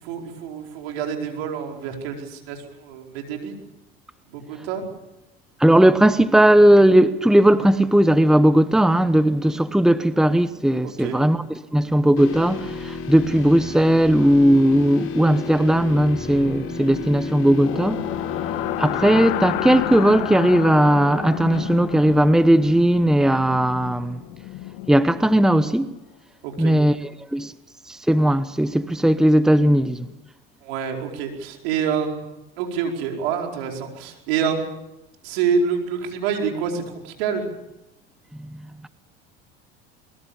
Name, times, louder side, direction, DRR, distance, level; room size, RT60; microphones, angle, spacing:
voice 1, 0.0-3.5 4.3-4.9 10.8-11.2 26.4-26.8 30.6-32.1 32.6-34.7 35.2-37.5, right 6 dB, 80° right, 4.8 m, -27 dB
voice 2, 5.6-11.4 11.7-18.1 18.8-24.2 24.9-25.9 26.6-27.5 27.9-30.1 38.4-38.6, right 1 dB, ahead, 1.0 m, -17 dB
sound 1, 12.2-22.1, left 5 dB, 50° left, 6.8 m, -33 dB
sound 2, 17.6-25.6, left 15 dB, 70° left, 1.6 m, -31 dB
23.5 x 21.5 x 7.1 m
supercardioid pair, 90°, 30 cm